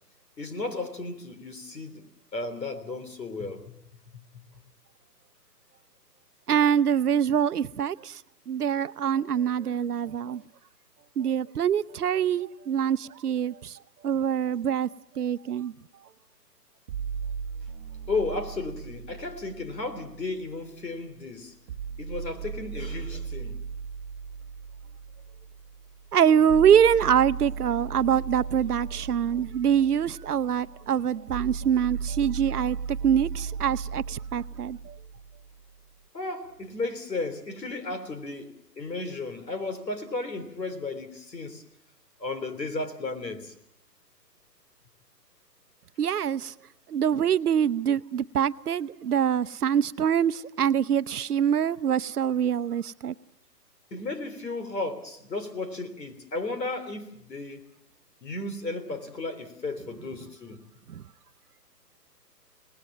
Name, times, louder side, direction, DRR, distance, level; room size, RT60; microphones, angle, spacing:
voice 1, 0.4-2.1 2.3-3.8 18.1-21.5 22.0-23.6 36.1-41.6 42.2-43.5 53.9-57.6 58.2-60.6, left 3 dB, 85° left, 3.6 m, -34 dB
voice 2, 6.5-8.2 8.5-10.4 11.2-13.8 14.0-14.9 15.2-15.7 26.1-35.0 46.0-46.5 46.9-53.1 60.9-61.0, right 8 dB, 65° right, 0.8 m, -24 dB
sound 1, 16.9-20.9 21.7-35.7, right 6 dB, 30° right, 1.1 m, -37 dB
27.0 x 19.0 x 7.4 m
hypercardioid pair, 145°, 49 cm